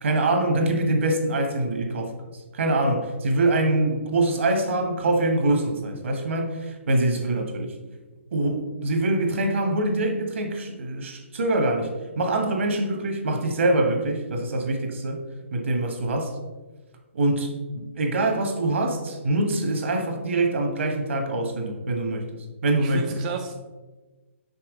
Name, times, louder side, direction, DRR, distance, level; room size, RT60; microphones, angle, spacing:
voice 1, 0.0-2.1 2.5-7.8 8.3-15.2 15.5-16.3 17.1-22.3 22.6-23.0, right 2 dB, 65° right, 4 dB, 1.3 m, -24 dB
voice 2, 6.9-7.2 22.8-23.5, right 6 dB, 35° right, 3 dB, 0.4 m, -34 dB
5.6 x 4.7 x 3.7 m, 1.2 s
figure-of-eight pair, 135°, 7 cm